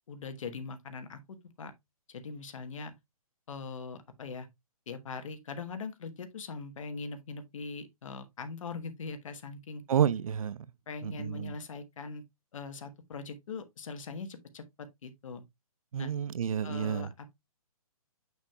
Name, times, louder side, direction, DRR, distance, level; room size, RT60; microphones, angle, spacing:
voice 1, 0.1-1.2 1.6-1.7 2.1-2.9 3.5-4.5 4.9-9.8 10.9-12.2 12.5-15.4 16.0-16.1 16.6-17.3, left 4 dB, 60° left, 1.3 m, -41 dB
voice 2, 9.9-10.7 11.0-11.6 15.9-17.1, right 8 dB, 65° right, 0.6 m, -30 dB
7.1 x 6.2 x 2.3 m
hypercardioid pair, 160°, 19 cm